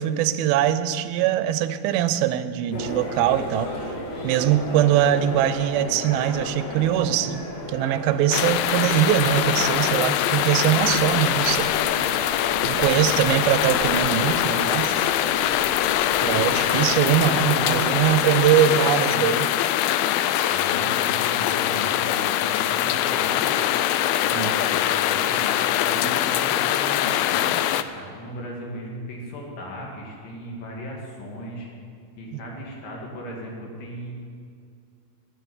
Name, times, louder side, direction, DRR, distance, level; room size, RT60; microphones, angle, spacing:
voice 1, 0.0-3.7 4.2-11.7 12.6-15.1 16.2-19.5 24.3-24.5, right 11 dB, 85° right, 12 dB, 2.5 m, -22 dB
sound 1, 2.7-18.4, left 1 dB, 50° left, 2.4 m, -34 dB
sound 2, 8.3-27.8, left 12 dB, 85° left, 2.4 m, -23 dB
voice 2, 12.6-13.5 16.1-16.7 20.5-23.6 24.1-27.6 27.9-31.7 32.2-34.1, equal, 70° left, -1 dB, 3.8 m, -37 dB
10.5 x 9.1 x 9.5 m, 2.2 s
omnidirectional pair, 4.2 m